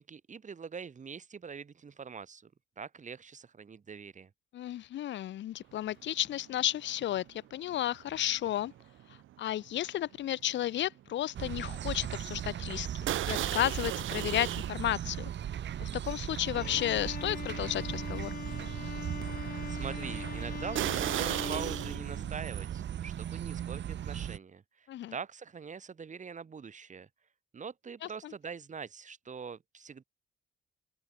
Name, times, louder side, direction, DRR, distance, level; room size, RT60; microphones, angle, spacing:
voice 1, 0.0-2.5 2.8-4.3 19.7-27.1 27.5-30.0, right 6 dB, 40° right, 2.7 m, -43 dB
voice 2, 4.5-8.7 9.4-12.9 13.3-15.3 15.8-18.3 24.9-25.1 28.0-28.3, left 12 dB, 65° left, 0.8 m, -33 dB
sound 1, 5.9-6.1 6.4-11.0 11.3-11.6 12.0-12.1 13.1-14.7 15.3-15.4 16.1-16.2 16.6-16.7 20.7-22.0, right 13 dB, 80° right, 2.3 m, -36 dB
sound 2, 11.3-24.4, right 10 dB, 65° right, 3.7 m, -37 dB
Bowed string instrument, 16.5-22.5, left 7 dB, 45° left, 3.5 m, -42 dB
open air
cardioid pair, 90°, 20 cm